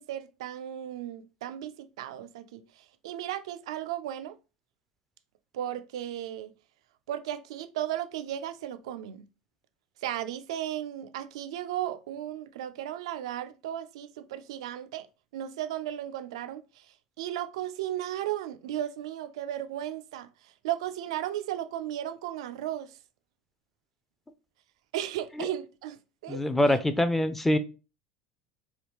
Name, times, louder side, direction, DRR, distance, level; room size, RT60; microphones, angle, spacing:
voice 1, 0.0-4.4 5.5-6.5 7.1-9.3 10.0-15.1 15.3-23.0 24.9-26.8, right 12 dB, 80° right, 0.3 m, -35 dB
voice 2, 26.3-27.6, left 1 dB, 10° left, 0.5 m, -24 dB
3.4 x 2.3 x 3.0 m
hypercardioid pair, 90°, 3 cm